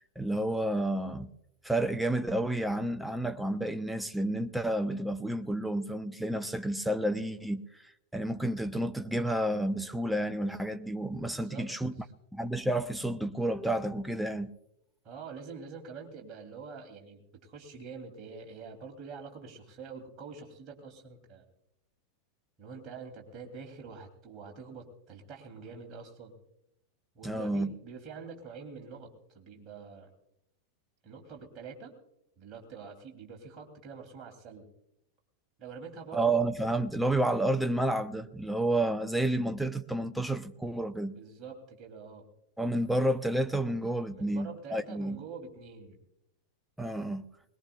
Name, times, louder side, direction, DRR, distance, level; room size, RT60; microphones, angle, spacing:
voice 1, 0.0-1.3 1.6-7.6 8.1-11.9 12.3-14.5 27.2-27.7 36.1-41.2 42.6-45.2 46.8-47.3, right 1 dB, 5° right, 0.7 m, -30 dB
voice 2, 11.3-11.7 15.0-21.5 22.6-26.3 27.1-30.1 31.0-31.9 32.4-34.6 35.6-36.4 41.1-42.3 44.1-46.0, right 5 dB, 30° right, 3.0 m, -46 dB
21.5 x 20.0 x 2.4 m
figure-of-eight pair, 90°, 0 cm